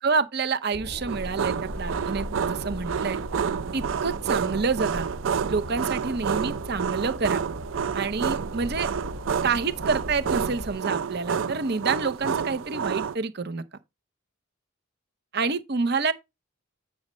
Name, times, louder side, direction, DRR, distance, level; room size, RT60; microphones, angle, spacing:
voice 1, 0.0-3.2 3.7-5.1 5.5-7.4 7.9-8.9 9.4-13.6 15.3-16.1, right 4 dB, 55° right, 0.7 m, -28 dB
sound 1, 0.7-10.8, equal, 90° right, 3.0 m, -38 dB
sound 2, 1.1-13.2, right 7 dB, 70° right, 0.4 m, -29 dB
8.6 x 6.2 x 3.1 m
head